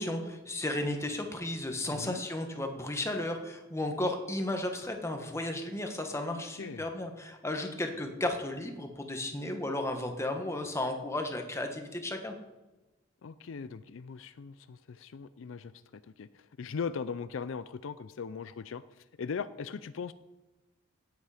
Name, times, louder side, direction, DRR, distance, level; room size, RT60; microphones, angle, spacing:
voice 1, 0.0-12.3, left 1 dB, 15° left, 4 dB, 1.3 m, -34 dB
voice 2, 1.9-2.2 6.3-6.8 13.2-18.8 19.2-20.1, left 5 dB, 70° left, 14 dB, 0.4 m, -39 dB
16.5 x 8.4 x 5.0 m, 1.1 s
head